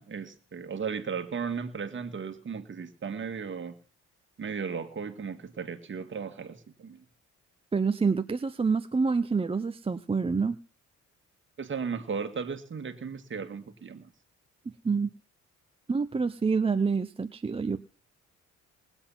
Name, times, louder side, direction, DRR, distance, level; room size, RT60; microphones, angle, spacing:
voice 1, 0.0-3.7 4.4-7.0 11.6-14.1, right 6 dB, 40° right, 8 dB, 2.0 m, -35 dB
voice 2, 7.7-10.6 14.8-15.1 15.9-17.8, right 4 dB, 20° right, 9 dB, 0.7 m, -27 dB
20.0 x 8.1 x 5.8 m, 0.43 s
cardioid pair, 90°, 30 cm